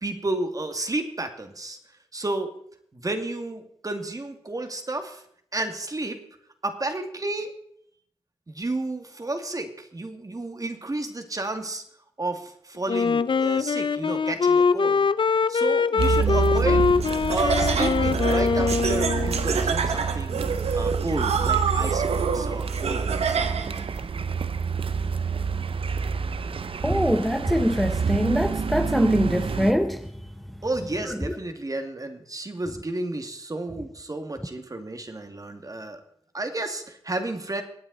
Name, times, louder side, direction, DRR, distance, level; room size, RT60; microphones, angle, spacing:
voice 1, 0.0-1.8 2.1-2.5 2.9-5.2 5.5-6.2 6.6-7.5 8.5-11.8 12.2-15.1 15.5-16.9 17.3-20.4 20.7-24.1 30.6-36.0 36.3-37.6, right 2 dB, 35° right, 2.1 m, -32 dB
Wind instrument woodwind instrument, 12.9-19.6, left 5 dB, 50° left, 0.5 m, -23 dB
Car, 16.0-29.7, right 5 dB, 60° right, 0.7 m, -27 dB
Laughter, 17.0-23.8, right 6 dB, 85° right, 1.1 m, -27 dB
voice 2, 26.8-30.1, equal, ahead, 0.9 m, -23 dB
24.0 x 8.8 x 4.1 m
cardioid pair, 55°, 10 cm